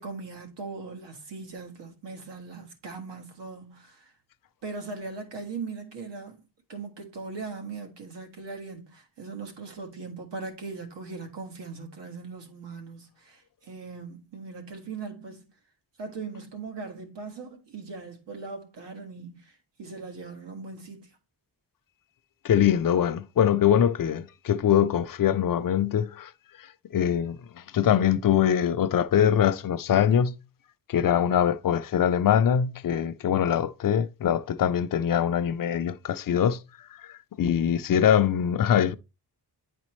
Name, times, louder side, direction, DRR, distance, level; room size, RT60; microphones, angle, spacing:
voice 1, 0.0-4.1 4.6-6.4 6.7-15.5 16.0-21.1 37.5-37.9, right 4 dB, 80° right, 1.7 m, -40 dB
voice 2, 22.4-26.3 26.9-27.4 27.7-30.4 30.9-36.6 37.1-39.0, left 9 dB, 55° left, 0.5 m, -23 dB
9.7 x 4.2 x 3.1 m
wide cardioid pair, 150°, 42 cm